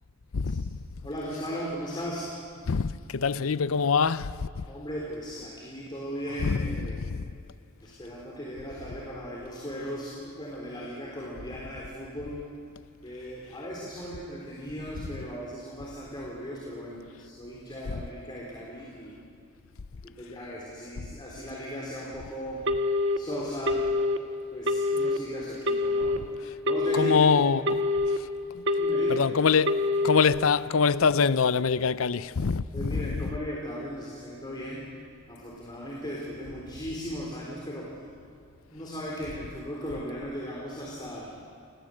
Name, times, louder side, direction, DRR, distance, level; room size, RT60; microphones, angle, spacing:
voice 1, 0.3-0.8 2.7-4.6 6.4-6.6 7.0-7.3 26.9-28.3 28.5-28.6 29.1-33.3, left 5 dB, 75° left, 0.6 m, -25 dB
voice 2, 1.0-2.4 4.7-7.1 7.8-12.4 13.0-19.1 20.0-22.6 23.2-23.9 24.5-26.2 26.6-27.2 28.8-29.3 32.7-34.9 35.3-37.9 38.7-41.3, equal, 20° left, 3.7 m, -37 dB
Telephone, 22.7-23.2 23.7-24.2 24.7-25.2 25.7-26.2 26.7-27.2 27.7-28.2 28.7-29.2 29.7-30.2, left 3 dB, 60° right, 1.4 m, -25 dB
29.0 x 19.5 x 7.8 m
head